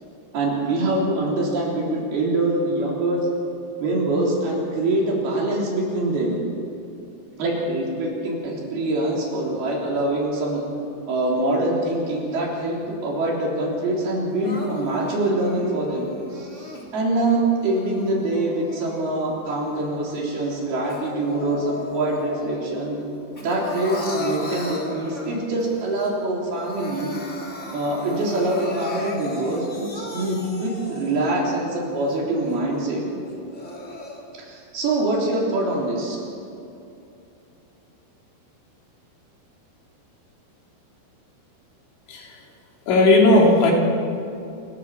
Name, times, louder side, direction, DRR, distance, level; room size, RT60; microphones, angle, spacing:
voice 1, 0.3-3.2 3.8-6.4 7.4-10.6 11.1-23.0 23.4-27.2 27.7-33.0 34.4-36.2, right 2 dB, 60° right, -2 dB, 5.2 m, -24 dB
Crying sobbing, 14.4-16.9 17.5-19.3 19.7-22.6 23.0-25.6 26.0-26.1 26.4-31.3 31.8-31.9 32.5-32.6 33.3-34.2, left 3 dB, 30° left, 1.4 m, -36 dB
voice 2, 42.1-42.4 42.9-43.7, left 2 dB, 85° left, 0 dB, 5.3 m, -16 dB
28.0 x 13.0 x 7.3 m, 2.7 s
omnidirectional pair, 5.3 m